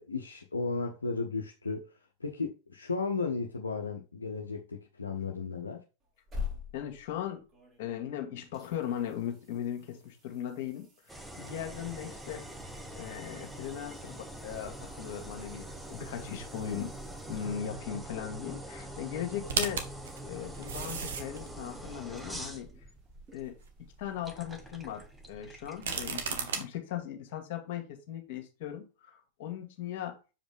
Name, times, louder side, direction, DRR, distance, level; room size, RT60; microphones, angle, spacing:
voice 1, 0.0-1.9 2.2-5.8, left 4 dB, 75° left, 0.9 m, -34 dB
sound 1, 6.0-8.2 8.5-18.1 20.9-21.0, left 5 dB, 25° right, 3.4 m, -48 dB
voice 2, 6.7-7.4 7.8-12.4 12.9-16.9 17.3-19.9 20.2-22.7 23.3-23.5 24.0-30.2, left 9 dB, 50° left, 2.0 m, -38 dB
sound 2, 11.1-26.4, right 1 dB, 5° right, 1.2 m, -44 dB
sound 3, 19.5-21.5 22.2-22.3 25.7-26.6, right 6 dB, 60° right, 1.3 m, -33 dB
7.2 x 5.1 x 3.6 m
figure-of-eight pair, 90°, 0 cm